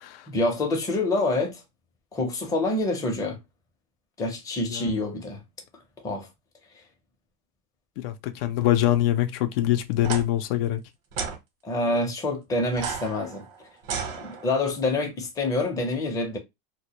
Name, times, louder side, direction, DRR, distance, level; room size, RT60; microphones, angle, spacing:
voice 1, 0.3-1.6 2.1-3.4 4.2-5.4 6.0-6.3 11.6-13.5 14.2-16.4, left 2 dB, 10° left, 0.5 m, -26 dB
voice 2, 4.7-5.0 8.0-10.8, left 13 dB, 80° left, 0.5 m, -24 dB
sound 1, 10.0-10.2 11.1-11.4 12.7-14.7, right 6 dB, 75° right, 0.8 m, -33 dB
2.1 x 2.1 x 2.8 m
supercardioid pair, 140°, 29 cm